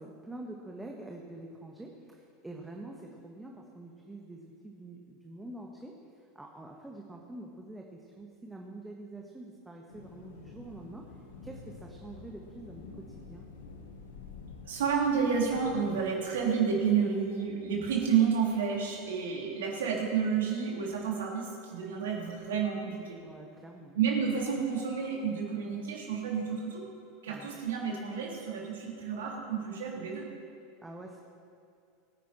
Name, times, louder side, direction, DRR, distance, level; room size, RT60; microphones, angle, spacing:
voice 1, 0.0-13.4 23.2-24.0 27.3-27.5 30.8-31.2, right 2 dB, 10° right, 0 dB, 1.4 m, -46 dB
sound 1, 9.9-15.9, left 4 dB, 70° left, 1.8 m, -49 dB
voice 2, 14.6-23.2 23.9-26.8 27.2-30.3, right 6 dB, 65° right, -2 dB, 3.2 m, -30 dB
22.5 x 9.3 x 4.4 m, 2.4 s
figure-of-eight pair, 80°, 0 cm